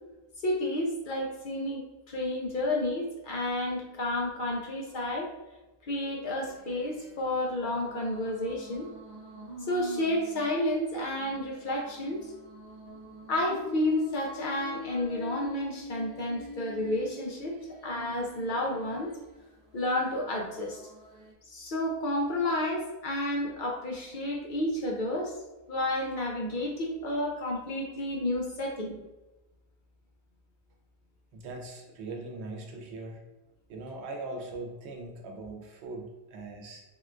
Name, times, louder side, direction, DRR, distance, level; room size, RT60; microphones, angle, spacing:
voice 1, 0.4-1.8 2.1-5.3 5.8-8.9 9.7-12.2 13.3-17.5 17.8-19.1 19.7-20.8 21.5-25.3 25.7-29.0, left 1 dB, 60° left, -1 dB, 0.6 m, -31 dB
sound 1, 6.3-21.3, left 1 dB, 45° right, 0.6 m, -45 dB
voice 2, 31.3-33.2 33.7-36.8, right 2 dB, 85° right, 2 dB, 0.9 m, -40 dB
3.6 x 2.2 x 2.4 m, 1.0 s
omnidirectional pair, 1.1 m